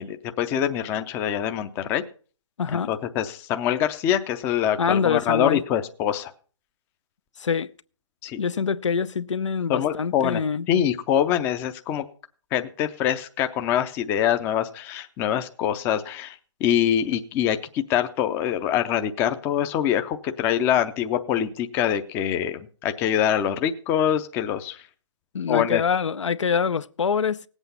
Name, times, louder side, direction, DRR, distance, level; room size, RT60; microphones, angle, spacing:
voice 1, 0.0-2.0 2.9-6.3 8.2-8.4 9.7-10.4 10.7-12.0 12.5-24.8 25.5-25.8, left 10 dB, 15° left, 0.5 m, -24 dB
voice 2, 2.6-2.9 4.8-5.6 7.4-7.7 8.4-10.7 25.3-27.5, left 6 dB, 75° left, 0.7 m, -25 dB
17.5 x 8.1 x 5.5 m
hypercardioid pair, 150°, 16 cm